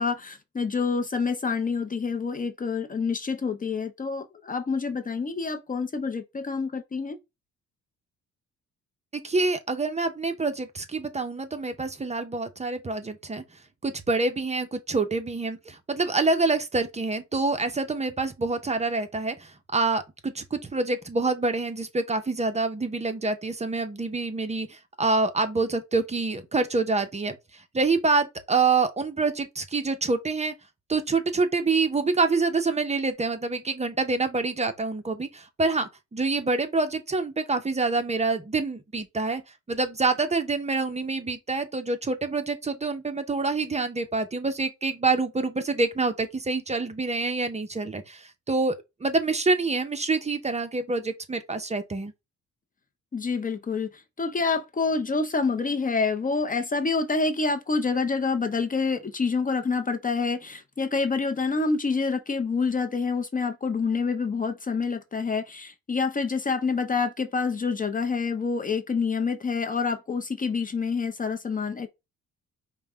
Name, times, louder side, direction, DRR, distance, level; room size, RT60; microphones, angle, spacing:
voice 1, 0.0-7.2 53.1-71.9, left 4 dB, 25° left, 0.6 m, -27 dB
voice 2, 9.2-13.4 13.8-30.5 30.9-39.4 39.7-48.8 49.0-52.1, right 3 dB, 20° right, 0.7 m, -26 dB
5.2 x 2.2 x 3.5 m
cardioid pair, 90°, 30 cm